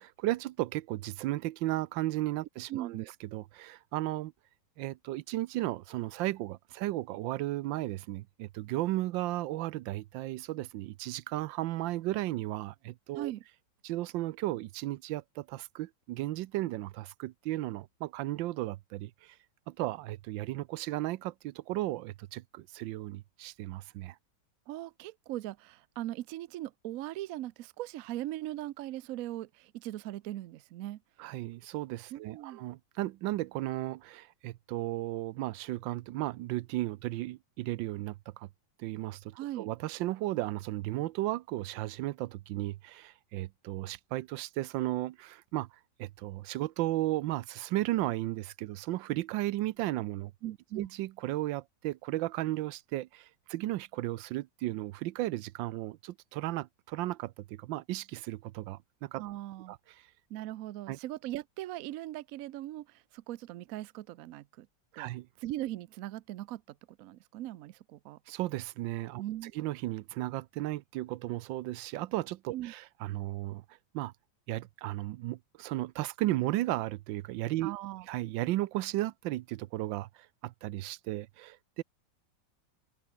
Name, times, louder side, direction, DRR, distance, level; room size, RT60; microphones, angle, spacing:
voice 1, 0.0-3.1 3.3-4.3 4.8-13.3 13.8-19.4 19.7-24.2 31.2-38.5 38.8-45.7 46.0-50.3 50.8-59.2 59.7-59.8 60.9-61.0 64.9-65.3 68.3-69.2 69.5-73.6 73.9-74.1 74.5-77.7 78.1-81.8, right 16 dB, 85° right, 1.3 m, -35 dB
voice 2, 2.7-3.1 13.2-13.4 24.7-31.0 32.1-32.6 39.3-39.7 50.4-50.9 59.2-59.7 60.3-64.7 65.0-65.1 65.4-68.2 69.2-69.5 72.5-72.7 77.6-78.1, right 14 dB, 70° right, 0.8 m, -39 dB
open air
omnidirectional pair, 2.0 m